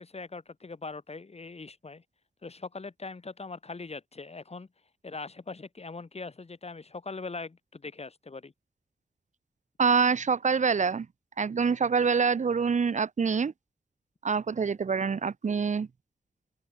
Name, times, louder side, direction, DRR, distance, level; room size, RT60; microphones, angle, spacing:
voice 1, 0.0-2.0 2.4-4.7 5.0-8.5, left 3 dB, 45° left, 5.7 m, -41 dB
voice 2, 9.8-11.1 11.4-13.5 14.2-15.9, right 5 dB, 60° right, 1.2 m, -25 dB
cardioid pair, 45°, 14 cm